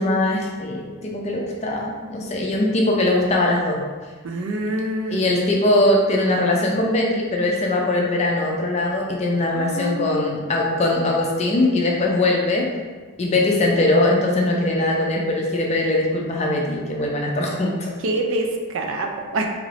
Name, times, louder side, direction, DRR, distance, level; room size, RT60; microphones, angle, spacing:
voice 1, 0.0-3.8 5.1-12.7 13.2-17.9, left 2 dB, 30° left, -1 dB, 0.4 m, -21 dB
voice 2, 4.2-5.3 9.5-10.4 18.0-19.5, right 1 dB, 70° right, 3 dB, 0.4 m, -26 dB
2.8 x 2.5 x 3.2 m, 1.4 s
head